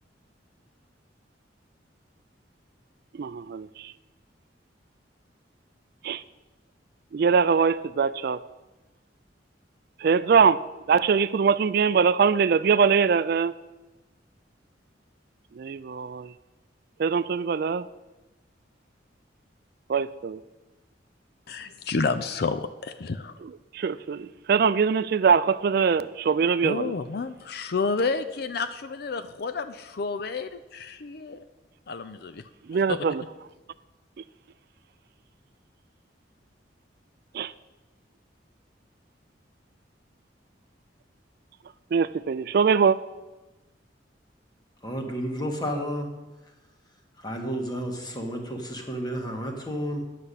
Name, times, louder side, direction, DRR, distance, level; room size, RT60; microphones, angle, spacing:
voice 1, 3.1-3.9 6.0-6.2 7.1-8.4 10.0-10.6 10.9-13.5 15.5-16.3 17.0-17.9 19.9-20.4 23.4-26.9 32.6-33.2 34.2-34.3 37.3-37.5 41.9-43.0, right 6 dB, 55° right, 15 dB, 0.4 m, -23 dB
voice 2, 21.5-23.4 26.6-31.4 31.9-32.4 32.9-33.0, left 4 dB, 55° left, 11 dB, 0.5 m, -30 dB
voice 3, 44.8-46.2 47.2-50.1, equal, 25° left, 2 dB, 1.6 m, -31 dB
9.8 x 5.8 x 8.3 m, 1.1 s
head